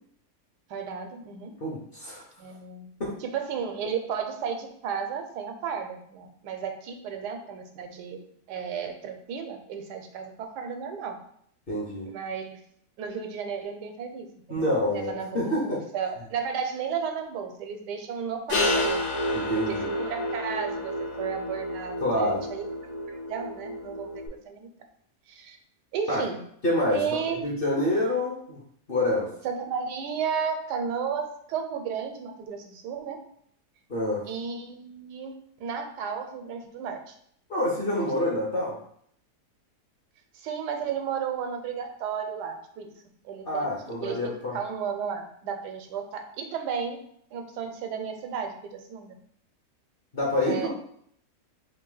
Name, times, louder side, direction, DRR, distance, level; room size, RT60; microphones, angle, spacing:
voice 1, 0.7-1.5 2.4-2.9 3.2-8.2 8.5-11.2 12.1-12.6 13.0-19.0 19.7-22.6 23.1-24.7 25.3-25.6 25.9-26.4 26.9-27.4 29.4-33.2 34.3-37.1 38.0-38.1 40.3-42.9 43.2-47.0 47.3-49.2 50.4-50.7, right 6 dB, 90° right, 6 dB, 1.2 m, -33 dB
voice 2, 1.6-2.2 3.0-3.1 11.7-12.1 14.5-15.8 19.3-19.8 22.0-22.4 26.1-26.2 26.6-28.6 28.9-29.3 33.9-34.2 37.5-38.8 43.5-44.6 50.1-50.7, left 1 dB, 50° left, -4 dB, 0.7 m, -27 dB
sound 1, 18.5-24.3, left 1 dB, 75° left, 1.3 m, -30 dB
3.1 x 2.7 x 3.8 m, 0.66 s
omnidirectional pair, 1.7 m